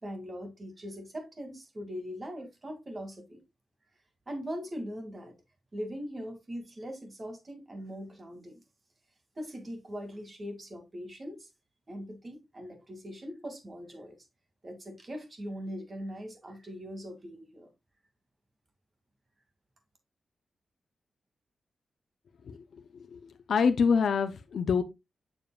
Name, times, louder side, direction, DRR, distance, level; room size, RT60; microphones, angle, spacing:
voice 1, 0.0-3.4 4.3-5.3 5.7-8.6 9.4-11.5 11.9-14.2 14.6-17.7, equal, 30° right, 2.3 m, -41 dB
voice 2, 23.5-24.8, left 6 dB, 75° left, 0.6 m, -25 dB
7.2 x 6.9 x 2.4 m
wide cardioid pair, 110°, 0 cm